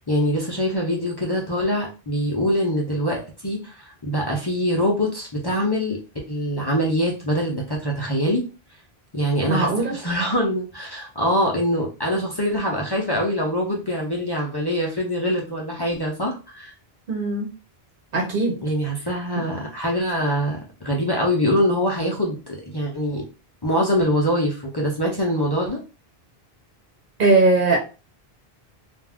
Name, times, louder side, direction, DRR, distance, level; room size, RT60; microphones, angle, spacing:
voice 1, 0.1-6.0 6.3-8.4 9.1-16.7 18.6-23.2 23.6-25.8, equal, 30° left, -2 dB, 0.5 m, -24 dB
voice 2, 9.5-9.9 17.1-17.5 18.1-18.6 19.3-19.4 27.2-27.8, right 3 dB, 60° right, -1 dB, 1.0 m, -19 dB
2.5 x 2.3 x 3.4 m, 0.32 s
omnidirectional pair, 1.0 m